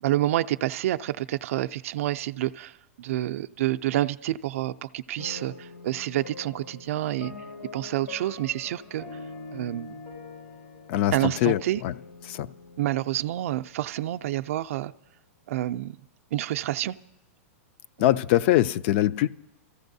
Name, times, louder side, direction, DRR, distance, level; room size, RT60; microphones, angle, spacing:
voice 1, 0.0-7.3 7.7-9.1 9.5-10.0 11.1-11.8 12.8-14.9 15.5-16.0 16.3-17.0 18.0-18.2, right 14 dB, 65° right, 0.4 m, -28 dB
sound 1, 5.2-14.3, left 3 dB, 90° left, 6.1 m, -44 dB
voice 2, 10.9-11.9 12.3-12.5 18.0-19.3, left 14 dB, 50° left, 0.4 m, -23 dB
25.5 x 14.5 x 2.7 m
hypercardioid pair, 140°, 8 cm